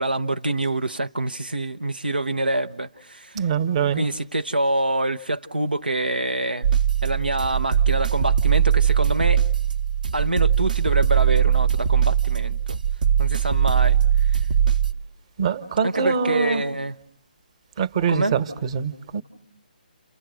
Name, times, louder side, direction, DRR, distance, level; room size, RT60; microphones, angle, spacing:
voice 1, 0.0-3.4 4.0-6.7 7.0-9.4 10.1-12.8 13.2-14.0 15.8-16.9 18.1-18.3, right 1 dB, 90° right, 1.0 m, -26 dB
voice 2, 3.3-4.1 15.4-16.6 17.8-19.2, right 7 dB, 40° right, 1.4 m, -24 dB
sound 1, 6.6-14.9, right 9 dB, 60° right, 1.2 m, -20 dB
30.0 x 29.0 x 6.3 m
figure-of-eight pair, 145°, 5 cm